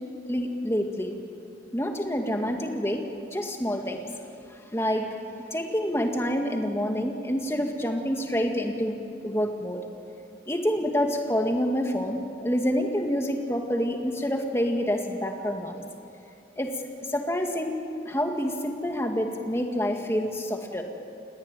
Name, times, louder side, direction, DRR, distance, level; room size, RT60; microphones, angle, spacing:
voice 1, 0.3-1.2 1.7-3.0 3.3-4.0 4.7-5.1 5.5-9.8 10.5-15.8 16.6-16.7 17.1-20.8, equal, 15° left, 3 dB, 2.1 m, -27 dB
28.5 x 19.5 x 9.2 m, 2.7 s
head